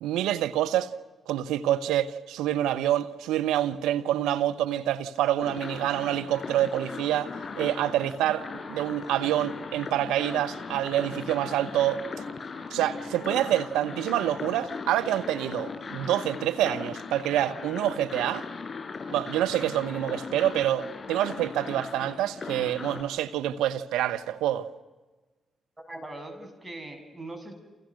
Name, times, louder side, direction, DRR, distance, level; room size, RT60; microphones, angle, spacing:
voice 1, 0.0-0.9 1.3-8.4 8.7-12.2 12.7-18.5 19.1-24.7, right 12 dB, 80° right, 1.1 m, -27 dB
sound 1, 5.4-23.0, left 4 dB, 45° left, 6.5 m, -38 dB
voice 2, 25.8-27.5, right 2 dB, 20° right, 7.9 m, -41 dB
29.5 x 28.5 x 6.5 m
hypercardioid pair, 40°, 0 cm